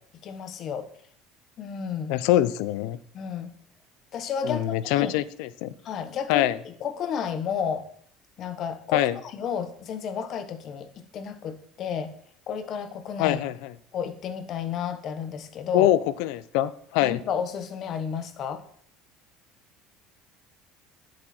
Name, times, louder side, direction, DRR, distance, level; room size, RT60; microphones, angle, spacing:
voice 1, 0.2-0.9 1.6-2.2 3.1-3.5 4.1-5.1 5.8-7.9 8.4-10.9 11.1-12.1 12.5-13.4 13.9-15.9 17.0-18.6, left 7 dB, 45° left, 10 dB, 1.1 m, -32 dB
voice 2, 2.1-3.0 4.4-5.7 6.3-6.6 8.9-9.2 13.2-13.7 15.7-17.2, left 13 dB, 80° left, 17 dB, 0.5 m, -24 dB
10.0 x 7.6 x 4.4 m, 0.62 s
cardioid pair, 135°, 0 cm